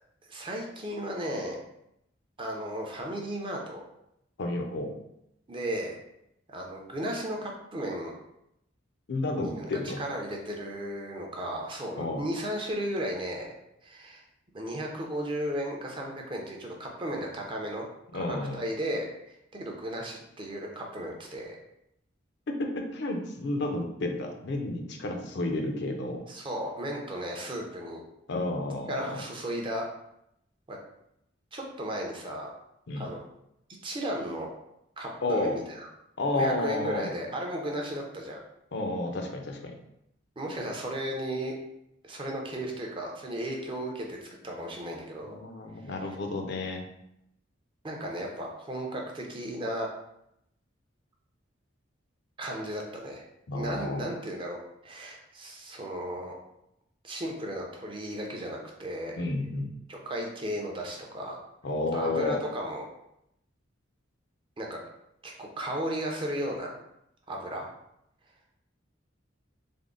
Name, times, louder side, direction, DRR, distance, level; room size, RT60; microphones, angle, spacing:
voice 1, 0.3-1.6 2.4-3.8 5.5-6.0 6.5-8.1 9.4-9.7 10.0-13.5 13.8-14.2 14.5-17.9 18.1-21.6 26.3-28.0 28.9-29.8 30.7-30.8 31.5-32.5 33.0-33.2 33.8-34.5 35.0-35.9 36.3-38.4 40.4-41.5 42.0-44.2 44.4-45.4 47.8-49.9 52.4-53.2 53.5-56.4 57.0-59.2 59.9-61.4 61.9-62.9 64.6-64.8 65.2-66.8 67.3-67.7, equal, 25° right, 0 dB, 0.6 m, -35 dB
voice 2, 4.4-4.9 9.1-10.0 12.0-12.3 18.1-18.6 22.5-26.2 28.3-29.2 32.9-33.1 35.2-35.6 36.2-37.1 38.7-39.8 45.2-46.8 53.5-54.1 59.2-59.8 61.6-62.4, left 2 dB, 65° left, 3 dB, 0.5 m, -31 dB
3.5 x 2.0 x 3.7 m, 0.79 s
head